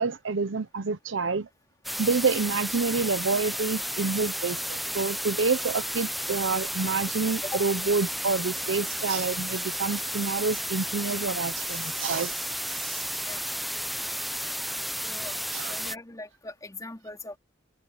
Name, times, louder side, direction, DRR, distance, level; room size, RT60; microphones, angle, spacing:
voice 1, 0.0-1.5 2.0-12.4 12.7-13.0 15.5-15.8, right 4 dB, 80° right, 0.8 m, -28 dB
sound 1, 1.8-15.9, equal, ahead, 0.7 m, -32 dB
voice 2, 15.0-15.4 15.7-17.4, left 2 dB, 20° left, 3.2 m, -40 dB
head